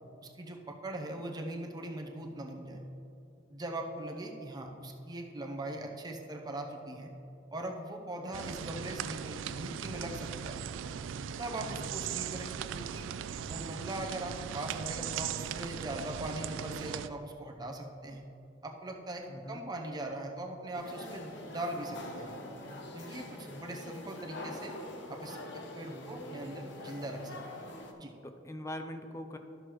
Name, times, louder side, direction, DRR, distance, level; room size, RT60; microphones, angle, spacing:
voice 1, 0.2-2.8 3.5-7.1 7.5-10.6 11.4-13.1 13.4-18.2 18.6-22.3 22.9-24.7 25.1-27.4 28.0-28.1, right 1 dB, 20° right, 2 dB, 0.7 m, -40 dB
sound 1, 8.3-17.1, right 8 dB, 75° right, 0.3 m, -39 dB
voice 2, 19.3-19.6 23.5-23.6 25.9-26.5 28.2-29.4, left 1 dB, 15° left, 7 dB, 0.5 m, -43 dB
sound 2, 20.7-27.9, left 1 dB, 65° left, 0.8 m, -44 dB
12.5 x 6.5 x 3.1 m, 2.7 s
head